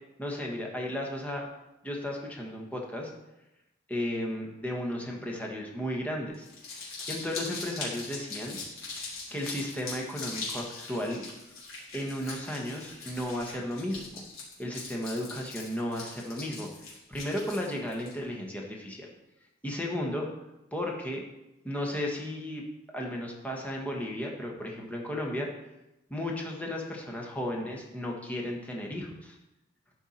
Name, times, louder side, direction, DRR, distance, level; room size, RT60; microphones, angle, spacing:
voice 1, 0.2-1.5 1.8-3.1 3.9-6.5 7.1-8.6 9.3-11.2 11.9-14.3 14.6-16.7 17.1-19.1 19.6-20.3 20.7-21.2 21.6-22.6 22.9-25.5 26.1-29.4, left 1 dB, 5° left, -1 dB, 1.3 m, -34 dB
Crumpling crinkling, 6.3-18.1, left 3 dB, 80° left, 3.2 m, -41 dB
11.5 x 4.6 x 4.3 m, 0.95 s
head